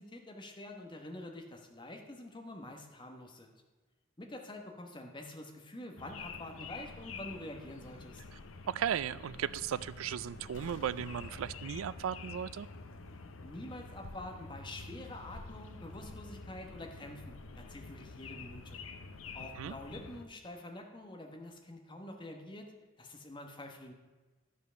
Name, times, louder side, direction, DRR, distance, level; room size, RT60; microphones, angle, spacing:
voice 1, 0.0-3.5 4.2-8.2 13.4-18.8 19.3-22.7 23.0-23.9, left 1 dB, 25° left, 3 dB, 1.1 m, -47 dB
sound 1, 6.0-20.3, left 4 dB, 85° left, 0.7 m, -48 dB
voice 2, 8.7-12.7 19.6-19.7, right 9 dB, 90° right, 17 dB, 0.4 m, -36 dB
sound 2, 10.5-13.4 13.7-13.8, left 1 dB, 65° left, 1.2 m, -53 dB
11.0 x 5.6 x 6.2 m, 1.3 s
head